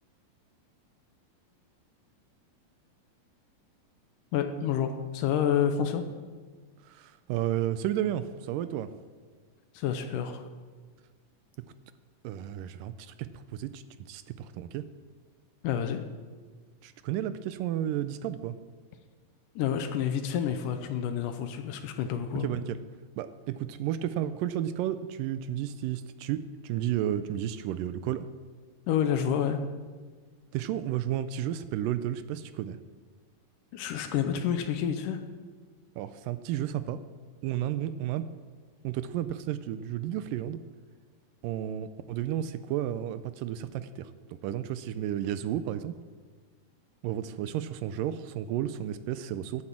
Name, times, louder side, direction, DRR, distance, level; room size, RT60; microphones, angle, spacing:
voice 1, 4.3-6.0 9.7-10.4 15.6-16.0 19.6-22.5 28.9-29.6 33.7-35.2, left 8 dB, 75° left, 8 dB, 2.2 m, -29 dB
voice 2, 6.9-8.9 12.2-13.1 13.5-14.8 16.8-18.5 22.4-22.8 23.2-28.3 30.5-32.8 36.0-37.0 37.4-38.2 38.8-40.6 41.4-44.1 44.4-46.0 47.0-49.6, right 11 dB, 80° right, 12 dB, 2.1 m, -32 dB
12.0 x 8.7 x 7.4 m, 1.5 s
omnidirectional pair, 4.1 m